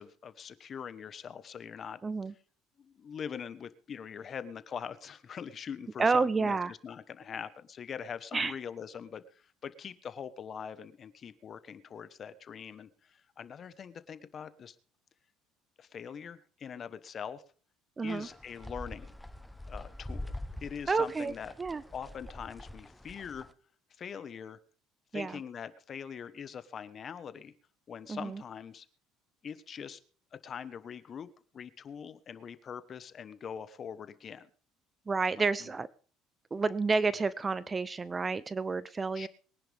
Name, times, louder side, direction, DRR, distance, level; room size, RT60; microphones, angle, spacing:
voice 1, 0.0-2.0 2.8-14.8 15.8-17.4 18.0-19.1 19.7-21.5 21.9-23.5 24.0-24.6 25.1-27.5 27.9-28.9 29.4-30.0 30.3-31.3 31.5-34.5 35.4-35.7 39.1-39.3, left 7 dB, 40° left, 13 dB, 1.2 m, -43 dB
voice 2, 2.0-2.3 6.0-6.7 8.3-8.5 18.0-18.3 20.9-21.3 21.6-21.8 25.1-25.4 28.1-28.4 35.1-35.9 36.5-39.3, right 4 dB, 20° right, 17 dB, 0.6 m, -30 dB
sound 1, 18.1-23.5, left 1 dB, 5° left, 0.9 m, -44 dB
23.0 x 10.5 x 3.5 m, 0.41 s
cardioid pair, 115°, 0 cm